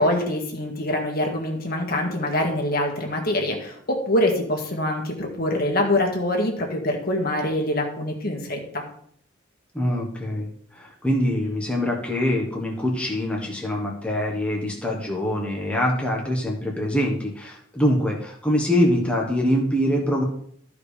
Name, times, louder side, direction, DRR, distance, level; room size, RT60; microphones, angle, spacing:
voice 1, 0.0-8.8, left 1 dB, 50° left, 2 dB, 1.9 m, -24 dB
voice 2, 9.7-20.2, equal, 5° left, -2 dB, 1.4 m, -24 dB
13.0 x 4.9 x 5.0 m, 0.65 s
head